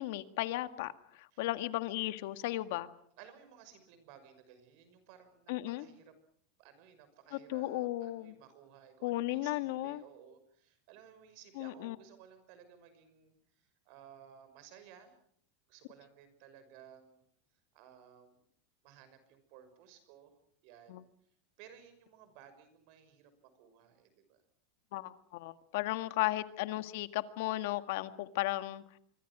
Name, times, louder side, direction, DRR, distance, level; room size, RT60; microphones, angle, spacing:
voice 1, 0.0-2.9 5.5-5.9 7.3-8.3 9.0-10.0 11.6-12.0 20.9-21.0 24.9-28.8, left 17 dB, 65° left, 11 dB, 1.7 m, -35 dB
voice 2, 3.2-6.1 6.6-13.3 13.8-15.1 15.7-17.2 17.7-18.4 18.8-20.3 20.6-21.0 21.6-24.4 25.7-25.9, right 8 dB, 55° right, 11 dB, 6.0 m, -57 dB
26.5 x 24.5 x 6.2 m, 0.64 s
supercardioid pair, 155°, 0 cm